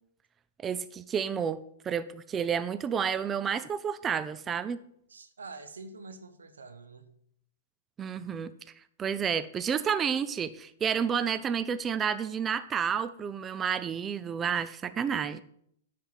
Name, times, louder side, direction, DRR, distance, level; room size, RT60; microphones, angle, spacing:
voice 1, 0.6-4.8 8.0-8.5 9.0-15.4, right 7 dB, 20° right, 13 dB, 0.5 m, -30 dB
voice 2, 5.1-7.1, right 3 dB, 90° right, 10 dB, 1.0 m, -46 dB
9.8 x 4.7 x 7.4 m, 0.70 s
hypercardioid pair, 120°, 0 cm